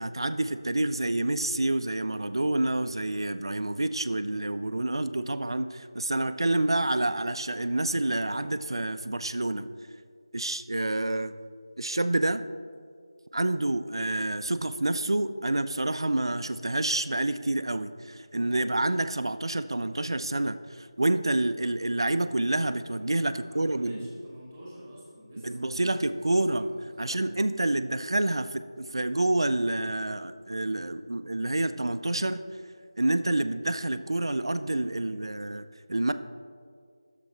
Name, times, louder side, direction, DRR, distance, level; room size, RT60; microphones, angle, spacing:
voice 1, 0.0-9.7 10.3-11.3 11.8-12.4 13.3-24.1 25.4-26.7 27.0-32.4 33.0-36.1, right 2 dB, 65° right, 11 dB, 0.4 m, -28 dB
voice 2, 23.2-27.2, equal, ahead, -7 dB, 1.8 m, -48 dB
11.0 x 6.6 x 3.2 m, 2.2 s
figure-of-eight pair, 165°, 3 cm